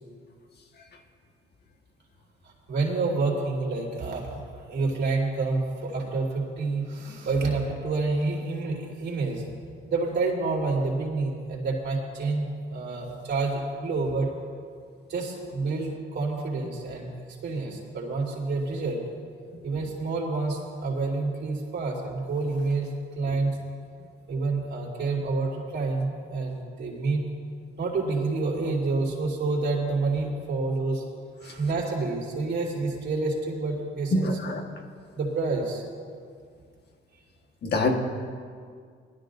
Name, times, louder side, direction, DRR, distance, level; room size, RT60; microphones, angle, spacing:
voice 1, 2.4-4.3 4.5-9.4 9.9-14.3 15.1-17.1 17.4-19.0 19.6-22.9 23.1-23.6 24.3-27.2 27.8-31.0 31.4-34.4 35.1-35.8, right 3 dB, 60° right, -3 dB, 3.1 m, -28 dB
voice 2, 34.1-34.6 37.6-38.0, left 2 dB, 55° left, 3 dB, 1.5 m, -24 dB
20.0 x 12.5 x 2.6 m, 2.1 s
cardioid pair, 90°, 20 cm